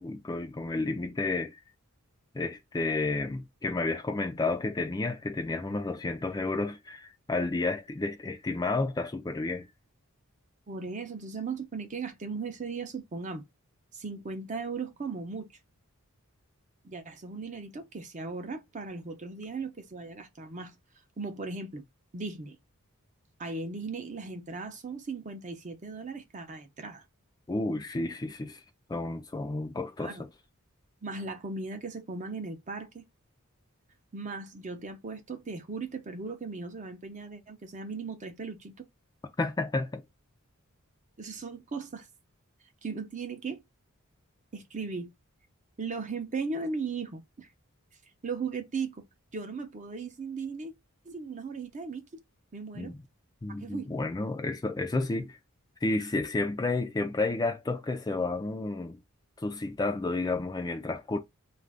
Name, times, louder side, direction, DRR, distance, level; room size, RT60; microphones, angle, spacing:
voice 1, 0.0-1.6 2.3-9.7 27.5-28.6 28.9-30.3 39.4-40.0 52.7-53.0 53.4-55.4 55.8-59.0 59.4-61.2, left 3 dB, 20° left, 0.4 m, -31 dB
voice 2, 10.7-13.4 13.9-15.5 16.8-20.7 21.2-21.8 22.1-22.6 23.4-27.0 30.0-30.2 31.0-33.0 34.1-38.9 41.2-42.1 42.8-43.6 44.5-45.1 45.8-47.5 48.2-49.0 49.3-50.7 51.0-52.2 52.5-52.9 53.6-53.9, right 4 dB, 35° right, 0.6 m, -37 dB
2.5 x 2.2 x 3.3 m
head